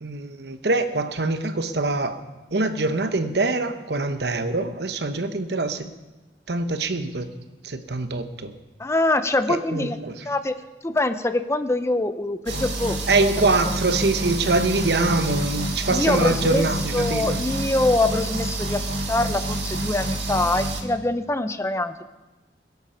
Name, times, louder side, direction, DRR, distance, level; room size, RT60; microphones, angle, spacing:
voice 1, 0.0-2.2 2.5-5.9 6.5-7.3 7.6-8.5 9.5-10.2 13.1-17.4, right 3 dB, 70° right, 1.0 m, -24 dB
voice 2, 8.8-10.0 10.3-10.6 10.8-13.0 13.4-13.5 15.9-16.6 16.9-18.8 19.1-22.0, left 2 dB, 15° left, 0.5 m, -24 dB
sound 1, 12.5-20.8, right 1 dB, 90° right, 2.1 m, -28 dB
21.5 x 8.2 x 5.7 m
head